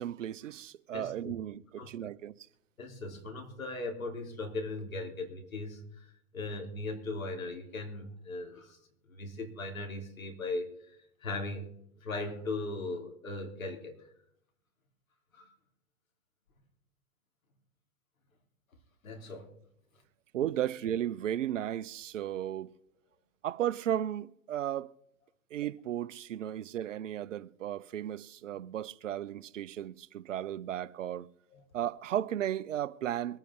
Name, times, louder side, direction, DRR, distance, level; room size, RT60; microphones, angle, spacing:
voice 1, 0.0-2.3 20.3-22.7 23.4-24.9 25.5-31.3 31.7-33.4, right 11 dB, 65° right, 0.8 m, -35 dB
voice 2, 0.9-1.3 1.8-2.1 2.8-8.8 9.1-11.7 12.0-14.1 15.3-15.5 19.0-19.5 28.5-28.6 31.5-31.6, left 2 dB, 80° left, 3.4 m, -39 dB
23.5 x 9.1 x 3.7 m
hypercardioid pair, 130°, 41 cm